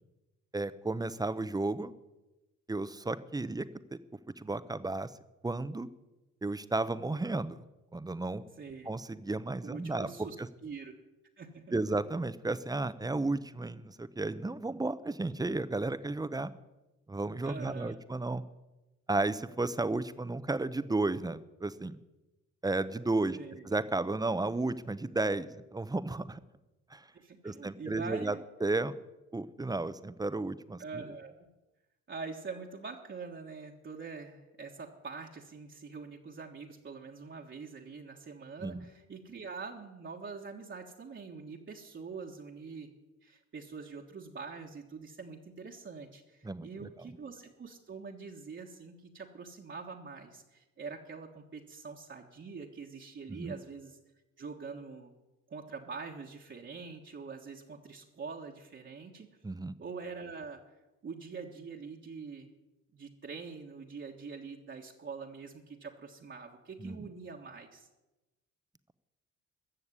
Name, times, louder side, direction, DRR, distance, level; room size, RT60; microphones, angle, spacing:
voice 1, 0.5-1.9 2.7-3.7 3.9-4.0 4.4-5.1 5.4-5.9 6.4-7.6 7.9-8.4 8.9-10.1 11.7-16.5 17.1-18.4 19.1-22.0 22.6-23.4 23.6-26.4 26.9-27.0 27.4-28.3 28.6-29.0 29.3-31.0 38.6-38.8 46.4-46.9 53.4-53.6 59.4-59.7 66.8-67.1, right 2 dB, 15° right, 14 dB, 0.7 m, -33 dB
voice 2, 8.6-8.9 9.6-10.3 10.6-11.0 11.4-11.7 17.4-18.0 23.3-23.7 27.1-28.4 30.8-31.5 32.1-42.9 43.2-54.0 54.4-55.1 55.5-59.3 59.8-60.6 61.0-62.5 62.9-67.9, right 5 dB, 40° right, -1 dB, 1.5 m, -44 dB
15.0 x 6.7 x 9.8 m, 1.0 s
cardioid pair, 90°, 30 cm